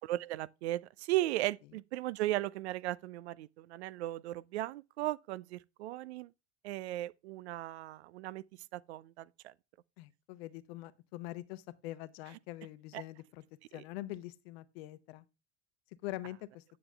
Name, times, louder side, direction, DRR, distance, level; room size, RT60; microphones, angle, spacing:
voice 1, 0.0-6.3 6.6-8.4 8.7-9.5 12.9-13.0, right 16 dB, 70° right, 0.5 m, -36 dB
voice 2, 10.0-13.4 13.7-15.2 16.0-16.6, left 16 dB, 65° left, 0.9 m, -44 dB
9.5 x 7.1 x 3.4 m
hypercardioid pair, 70°, 33 cm